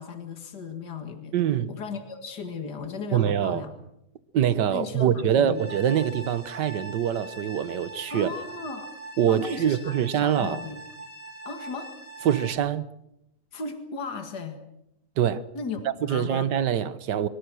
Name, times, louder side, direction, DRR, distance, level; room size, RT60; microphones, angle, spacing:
voice 1, 0.0-1.3 1.7-3.7 4.7-5.6 8.1-8.9 9.3-10.8 11.5-11.9 13.5-14.6 15.5-16.5, left 4 dB, 75° left, 2.6 m, -36 dB
voice 2, 1.3-1.7 3.1-3.6 4.3-8.3 9.2-10.6 12.2-12.9 15.2-15.4 16.0-17.3, right 9 dB, 85° right, 1.7 m, -24 dB
sound 1, 5.5-12.5, right 2 dB, 20° right, 4.3 m, -42 dB
24.5 x 22.5 x 6.3 m
omnidirectional pair, 1.8 m